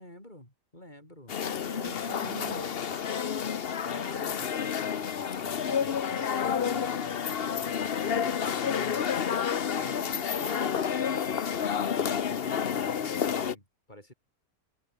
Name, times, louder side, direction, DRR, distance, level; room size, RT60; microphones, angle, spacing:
voice 1, 0.0-1.4 3.5-14.1, left 1 dB, 25° left, 8.2 m, -48 dB
sound 1, 1.3-13.5, left 7 dB, 45° left, 0.9 m, -30 dB
voice 2, 1.4-3.1, right 5 dB, 45° right, 1.8 m, -45 dB
omnidirectional pair, 1.8 m